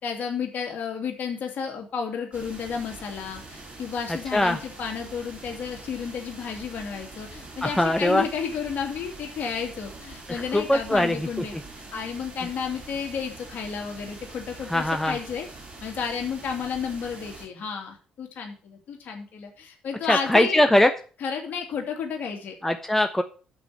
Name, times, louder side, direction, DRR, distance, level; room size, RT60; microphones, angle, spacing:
voice 1, 0.0-11.5 11.9-15.5 15.8-20.6 21.2-22.5, left 6 dB, 50° left, 2 dB, 2.8 m, -32 dB
sound 1, 2.3-17.5, right 2 dB, 35° right, 5.5 m, -44 dB
voice 2, 7.6-8.3 10.5-11.6 14.7-15.2 20.1-20.9 22.6-23.2, left 1 dB, 5° left, 7 dB, 0.9 m, -21 dB
7.5 x 6.1 x 7.7 m, 0.38 s
figure-of-eight pair, 45°, 4 cm